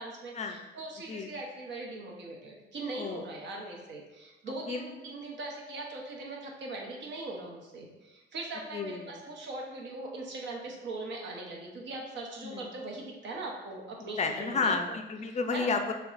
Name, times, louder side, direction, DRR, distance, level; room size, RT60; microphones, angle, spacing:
voice 1, 0.0-14.7 15.3-15.7, right 2 dB, 65° right, -1 dB, 0.9 m, -40 dB
voice 2, 8.7-9.2 12.4-12.7 14.2-15.9, left 4 dB, 35° left, 6 dB, 0.4 m, -31 dB
6.6 x 2.3 x 2.5 m, 1.1 s
cardioid pair, 90°, 20 cm